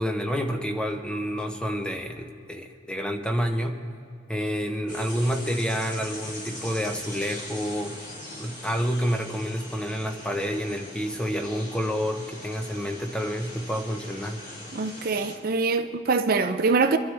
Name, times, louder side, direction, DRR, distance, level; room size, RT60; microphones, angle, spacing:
voice 1, 0.0-3.8 4.3-8.0 8.4-14.4, equal, 5° left, 0.9 m, -29 dB
sound 1, 4.9-15.4, left 1 dB, 40° left, 2.7 m, -41 dB
voice 2, 14.7-17.0, right 4 dB, 50° right, 0.5 m, -24 dB
24.5 x 12.5 x 3.4 m
head